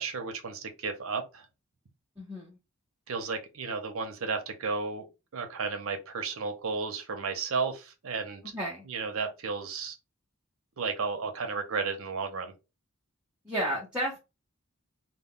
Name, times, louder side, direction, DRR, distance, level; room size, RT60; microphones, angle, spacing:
voice 1, 0.0-1.5 3.1-5.1 5.3-8.6 8.9-10.0 10.8-12.5, right 4 dB, 70° right, 0.6 m, -33 dB
voice 2, 2.2-2.6 8.5-8.9 13.4-14.2, equal, 5° right, 0.5 m, -32 dB
2.1 x 2.1 x 3.5 m
head